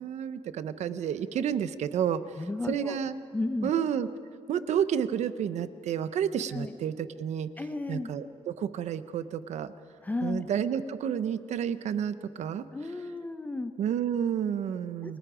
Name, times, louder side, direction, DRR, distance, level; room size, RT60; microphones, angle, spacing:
voice 1, 0.0-3.2 3.6-4.1 4.5-7.5 7.9-9.7 10.2-12.6 13.8-15.2, right 8 dB, 80° right, 13 dB, 0.9 m, -30 dB
voice 2, 2.4-3.0 3.3-3.7 6.5-6.8 7.6-8.1 10.0-10.4 12.7-13.7 15.0-15.2, left 2 dB, 15° left, 8 dB, 0.7 m, -33 dB
29.0 x 23.5 x 5.0 m, 2.3 s
wide cardioid pair, 175°, 12 cm